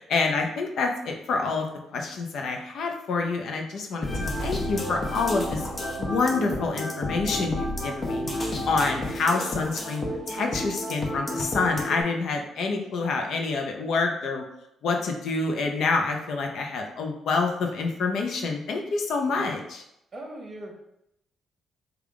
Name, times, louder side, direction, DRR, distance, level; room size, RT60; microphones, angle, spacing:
voice 1, 0.0-5.6 6.0-14.4 14.8-19.8, left 4 dB, 70° left, 3 dB, 0.6 m, -27 dB
sound 1, 4.0-12.0, left 1 dB, 35° left, 0.8 m, -31 dB
voice 2, 20.1-20.7, right 1 dB, 30° right, -1 dB, 1.0 m, -39 dB
3.4 x 2.3 x 3.6 m, 0.81 s
cardioid pair, 90°, 0 cm